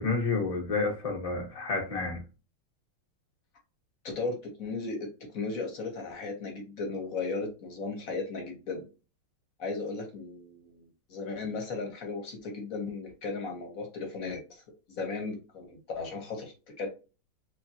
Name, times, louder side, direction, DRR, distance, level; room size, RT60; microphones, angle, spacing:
voice 1, 0.0-2.2, left 3 dB, 75° left, 0.3 m, -30 dB
voice 2, 4.0-5.1 5.3-8.8 9.6-10.8 11.1-14.6 15.0-16.9, left 3 dB, 55° left, 1.0 m, -36 dB
3.5 x 3.3 x 2.7 m
omnidirectional pair, 2.4 m